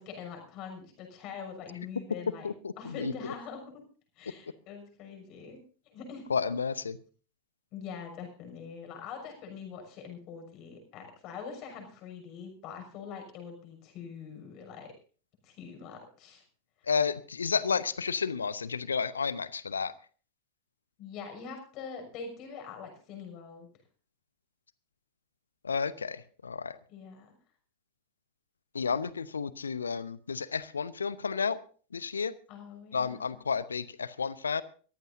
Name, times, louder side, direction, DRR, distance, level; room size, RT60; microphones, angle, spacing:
voice 1, 0.0-2.5 2.8-3.8 4.2-5.6 5.9-6.2 7.7-14.9 15.4-16.4 21.0-23.7 26.9-27.3 32.5-33.3, left 6 dB, 40° left, 5 dB, 6.3 m, -44 dB
voice 2, 2.4-3.1 6.3-7.0 16.9-19.9 25.6-26.8 28.7-31.6 31.9-32.3 32.9-34.6, left 5 dB, 75° left, 17 dB, 0.8 m, -31 dB
22.5 x 15.0 x 2.7 m, 0.40 s
figure-of-eight pair, 90°, 0 cm